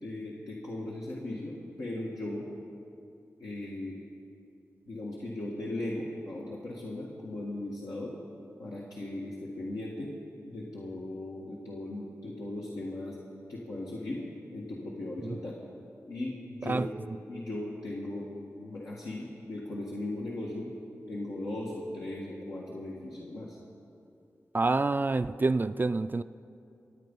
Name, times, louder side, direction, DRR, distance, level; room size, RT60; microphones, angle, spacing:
voice 1, 0.0-2.4 3.4-4.0 4.9-8.1 8.6-10.1 10.5-13.2 13.5-14.2 14.5-15.6 16.1-16.9 17.2-18.3 18.6-20.7 21.1-23.6, left 1 dB, 85° left, -5 dB, 1.7 m, -38 dB
voice 2, 24.5-26.2, right 3 dB, 35° right, 12 dB, 0.3 m, -27 dB
24.0 x 8.6 x 5.4 m, 2.6 s
cardioid pair, 55°, 6 cm